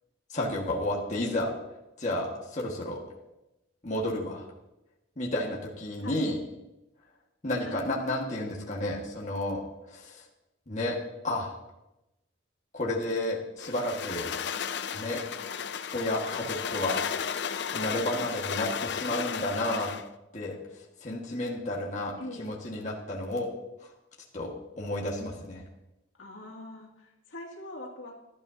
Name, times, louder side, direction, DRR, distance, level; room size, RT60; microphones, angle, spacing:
voice 1, 0.3-1.5 2.0-3.0 3.8-4.4 5.2-6.4 7.4-10.2 10.7-11.0 11.2-11.5 12.7-14.3 14.9-15.2 15.9-17.0 17.6-19.9 20.3-20.6 21.0-23.5 23.8-23.9 24.3-25.6, left 1 dB, 35° left, -2 dB, 1.7 m, -31 dB
sound 1, 13.6-20.1, left 7 dB, 60° left, 0.5 m, -34 dB
voice 2, 22.2-22.5 26.2-28.1, left 1 dB, 90° left, -1 dB, 2.4 m, -43 dB
17.0 x 12.0 x 2.8 m, 0.95 s
head